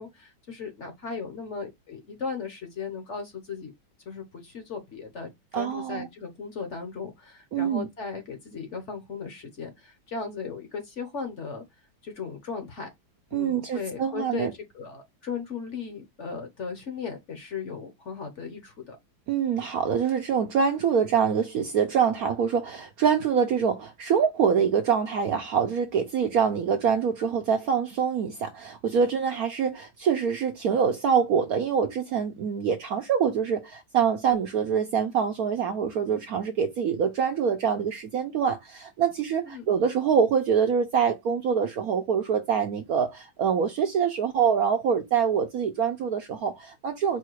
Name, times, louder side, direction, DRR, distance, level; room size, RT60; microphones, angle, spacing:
voice 1, 0.0-3.7 4.1-11.6 12.0-12.9 13.3-14.5 14.7-19.0 39.4-39.6, left 5 dB, 50° left, 1.0 m, -37 dB
voice 2, 5.5-6.1 7.5-7.9 13.3-14.5 19.3-47.2, right 7 dB, 70° right, 0.8 m, -25 dB
4.9 x 2.3 x 4.5 m
omnidirectional pair, 2.1 m